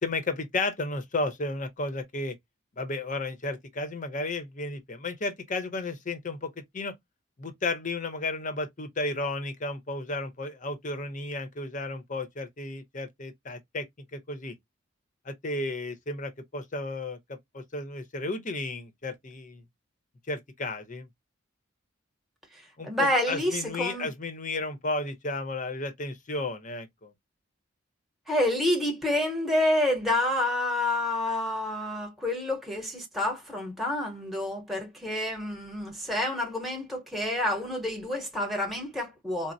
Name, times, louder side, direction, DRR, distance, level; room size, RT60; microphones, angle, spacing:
voice 1, 0.0-2.4 2.8-6.9 7.4-13.9 14.1-14.5 15.2-19.6 20.3-21.1 22.8-27.1, left 2 dB, 40° left, 0.7 m, -33 dB
voice 2, 22.5-24.1 28.3-39.5, left 1 dB, ahead, 0.8 m, -28 dB
4.0 x 2.0 x 2.5 m
head